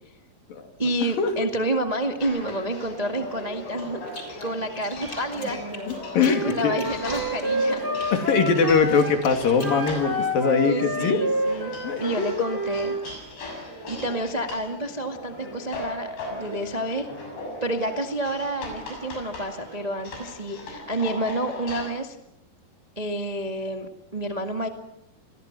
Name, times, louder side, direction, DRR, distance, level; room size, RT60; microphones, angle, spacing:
voice 1, 0.8-4.0 4.4-5.6 6.2-7.9 10.6-11.7 12.0-13.0 13.9-17.1 17.6-22.1 22.9-24.7, right 1 dB, 50° right, 4 dB, 0.4 m, -29 dB
sound 1, 2.2-21.9, left 1 dB, 75° left, 8.9 m, -38 dB
sound 2, 4.1-4.5 4.7-8.1 8.5-10.0, left 2 dB, 25° left, 4.6 m, -43 dB
voice 2, 5.9-6.9 8.1-11.2 11.8-12.3, left 5 dB, 60° left, 5 dB, 4.1 m, -22 dB
Wind instrument woodwind instrument, 6.2-9.2 9.6-13.0, equal, 5° right, 3.1 m, -29 dB
29.5 x 22.0 x 6.1 m, 0.83 s
omnidirectional pair, 4.7 m